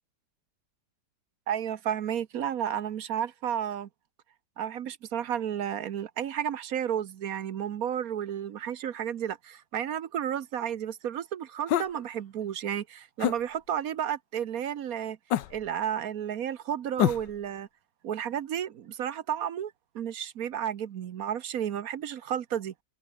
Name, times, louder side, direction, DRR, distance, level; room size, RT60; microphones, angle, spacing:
voice 1, 1.5-3.9 4.6-15.2 15.5-17.7 18.0-22.7, right 9 dB, 60° right, 1.2 m, -32 dB
sound 1, 11.7-12.0 13.2-13.4 15.3-15.7 17.0-17.4, left 12 dB, 75° left, 1.5 m, -26 dB
omnidirectional pair, 2.0 m